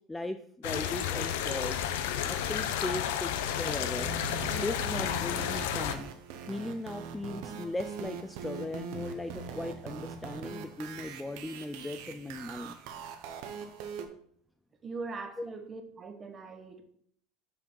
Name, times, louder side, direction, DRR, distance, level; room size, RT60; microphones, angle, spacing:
voice 1, 0.1-1.9 2.3-4.1 4.5-6.1 6.5-12.8 15.4-15.5, left 2 dB, 5° left, 8 dB, 0.3 m, -38 dB
sound 1, 0.6-5.9, left 9 dB, 80° left, 0.7 m, -32 dB
sound 2, 4.0-14.1, right 5 dB, 65° right, 1.0 m, -42 dB
voice 2, 14.8-16.8, right 4 dB, 20° right, 6 dB, 1.0 m, -41 dB
6.5 x 5.9 x 4.6 m, 0.63 s
supercardioid pair, 155°, 0 cm